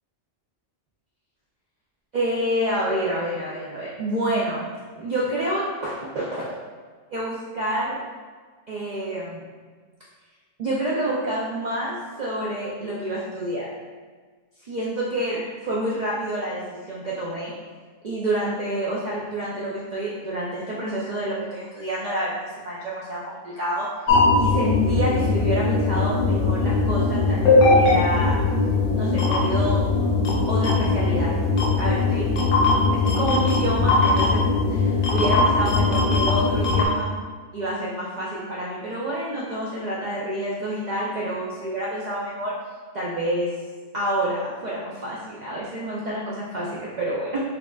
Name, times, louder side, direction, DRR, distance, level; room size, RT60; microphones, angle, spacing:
voice 1, 2.1-6.5 7.1-8.0 8.7-9.4 10.6-13.7 14.7-17.5 18.0-23.9 24.4-28.4 29.0-29.8 30.5-31.3 31.8-32.3 32.9-34.4 34.7-37.1 37.5-42.5 42.9-43.5 43.9-47.4, right 1 dB, 55° right, -6 dB, 0.5 m, -28 dB
sound 1, 24.1-36.9, left 3 dB, 60° left, 0.6 m, -20 dB
4.9 x 2.4 x 2.3 m, 1.5 s
omnidirectional pair, 1.2 m